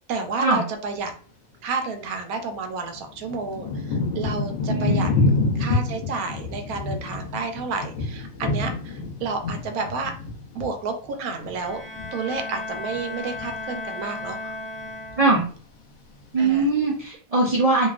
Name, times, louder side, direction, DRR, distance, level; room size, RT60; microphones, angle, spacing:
voice 1, 0.1-1.1 1.6-5.1 5.5-10.1 10.5-11.8 12.1-14.5 16.4-16.7, right 4 dB, 85° right, 6 dB, 1.0 m, -30 dB
Thunder / Rain, 2.1-2.2 2.9-12.4 12.7-13.6 14.1-14.5 14.8-15.6 16.2-16.3, left 3 dB, 65° left, 0.9 m, -27 dB
voice 2, 4.7-5.4 15.2-15.4 16.3-17.9, right 3 dB, 70° right, -4 dB, 0.3 m, -21 dB
Bowed string instrument, 11.5-15.6, left 2 dB, 30° left, 0.3 m, -35 dB
2.8 x 2.3 x 2.4 m, 0.41 s
omnidirectional pair, 1.5 m